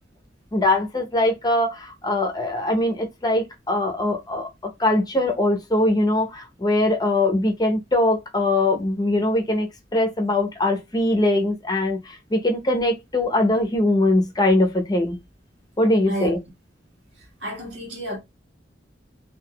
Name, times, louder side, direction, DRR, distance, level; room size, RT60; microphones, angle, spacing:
voice 1, 0.5-4.5 4.8-9.7 9.9-15.2 15.8-16.4, left 1 dB, 20° left, 0.7 m, -21 dB
voice 2, 17.4-18.2, right 1 dB, 90° right, 1.5 m, -30 dB
3.5 x 2.7 x 2.2 m
head